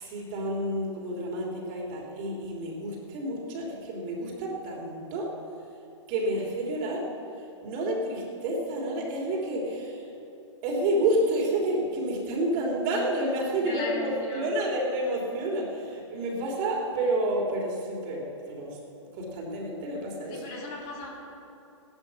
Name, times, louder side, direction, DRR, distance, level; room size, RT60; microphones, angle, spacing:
voice 1, 0.0-5.3 6.1-7.1 7.6-10.1 10.6-20.4, right 1 dB, 35° right, -1 dB, 3.1 m, -29 dB
voice 2, 13.6-14.5 20.3-21.1, left 3 dB, 35° left, -1 dB, 2.5 m, -37 dB
17.0 x 11.5 x 5.7 m, 2.8 s
hypercardioid pair, 140°, 17 cm